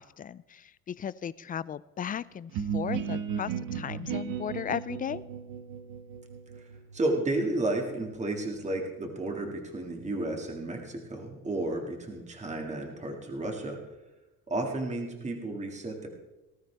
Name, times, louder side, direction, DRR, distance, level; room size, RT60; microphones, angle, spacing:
voice 1, 0.0-5.2, left 8 dB, 25° left, 18 dB, 0.3 m, -36 dB
sound 1, 2.5-8.2, right 7 dB, 70° right, 1.4 m, -36 dB
voice 2, 6.6-13.8 14.5-16.1, right 2 dB, 20° right, 2 dB, 2.1 m, -32 dB
19.5 x 12.5 x 3.4 m, 1.0 s
cardioid pair, 120°, 33 cm